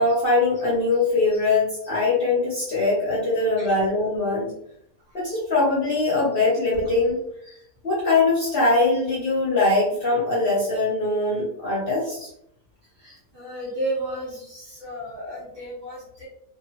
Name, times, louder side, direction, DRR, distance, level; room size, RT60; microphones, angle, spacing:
voice 1, 0.0-4.5 5.1-7.2 7.5-7.6 7.8-12.3, left 2 dB, 45° left, -6 dB, 0.8 m, -22 dB
voice 2, 13.0-16.3, right 1 dB, 45° right, -5 dB, 0.9 m, -33 dB
2.8 x 2.5 x 2.8 m, 0.74 s
omnidirectional pair, 1.7 m